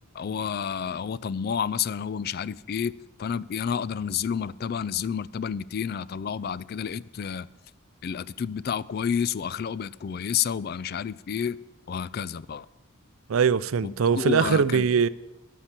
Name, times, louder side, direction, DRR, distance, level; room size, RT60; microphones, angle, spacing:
voice 1, 0.1-2.9 3.2-7.5 8.0-11.6 11.9-12.7 13.8-14.9, left 7 dB, 45° left, 0.3 m, -30 dB
voice 2, 13.3-15.1, right 6 dB, 75° right, 0.4 m, -22 dB
10.0 x 9.6 x 7.4 m
head